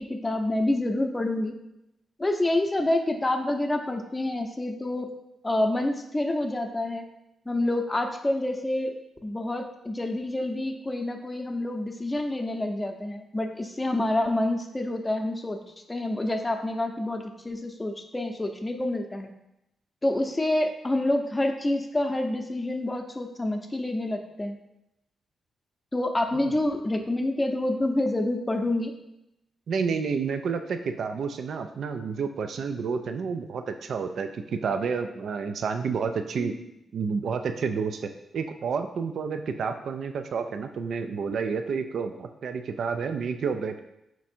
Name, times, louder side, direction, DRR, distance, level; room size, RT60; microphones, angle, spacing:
voice 1, 0.0-1.6 2.2-5.1 5.4-7.1 7.5-8.9 9.2-15.6 15.9-19.3 20.0-24.6 25.9-29.0 36.4-36.6, left 1 dB, 25° left, 4 dB, 0.6 m, -27 dB
voice 2, 29.7-36.5 36.9-43.8, right 5 dB, 70° right, 7 dB, 0.3 m, -30 dB
4.4 x 2.5 x 4.2 m, 0.85 s
supercardioid pair, 45°, 0 cm